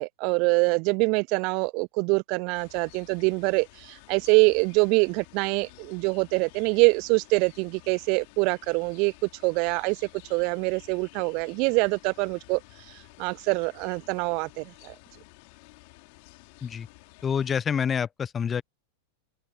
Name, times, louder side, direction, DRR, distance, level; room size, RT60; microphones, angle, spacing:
voice 1, 0.0-10.0 10.3-12.6 13.2-14.9, right 31 dB, 45° right, 0.6 m, -25 dB
sound 1, 2.5-17.6, left 31 dB, 45° left, 4.6 m, -52 dB
voice 2, 17.2-18.6, left 7 dB, 20° left, 1.1 m, -27 dB
open air
figure-of-eight pair, 90°, 0 cm